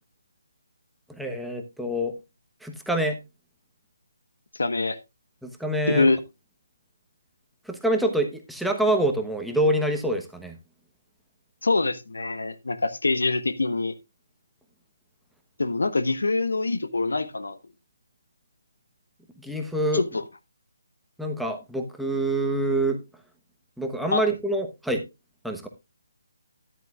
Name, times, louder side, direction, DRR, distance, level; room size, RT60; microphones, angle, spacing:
voice 1, 1.1-2.2 2.6-3.2 5.4-6.1 7.7-10.6 19.4-20.0 21.2-23.0 23.8-25.0 25.4-25.7, right 1 dB, ahead, 1.0 m, -26 dB
voice 2, 4.6-5.0 5.9-6.2 11.6-14.0 15.6-17.6 19.9-20.2 24.1-24.2, left 3 dB, 75° left, 1.1 m, -24 dB
13.5 x 10.5 x 2.4 m
figure-of-eight pair, 150°, 0 cm